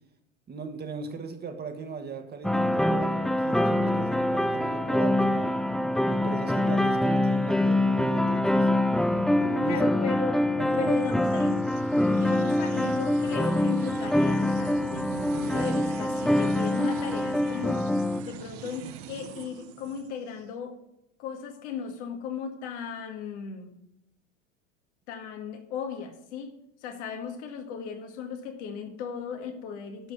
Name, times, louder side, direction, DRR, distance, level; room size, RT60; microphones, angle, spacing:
voice 1, 0.5-5.5 6.1-8.7 9.4-9.8 10.5-11.0, right 4 dB, 25° right, 6 dB, 1.5 m, -38 dB
sound 1, 2.4-18.2, left 1 dB, ahead, 0.3 m, -25 dB
voice 2, 9.7-10.4 10.8-11.6 12.2-17.9 18.3-20.8 21.2-23.8 25.1-30.1, left 7 dB, 70° left, 4 dB, 2.0 m, -36 dB
sound 2, 10.7-20.4, right 9 dB, 60° right, 1.1 m, -43 dB
11.5 x 4.6 x 8.0 m, 0.81 s
hypercardioid pair, 100°, 36 cm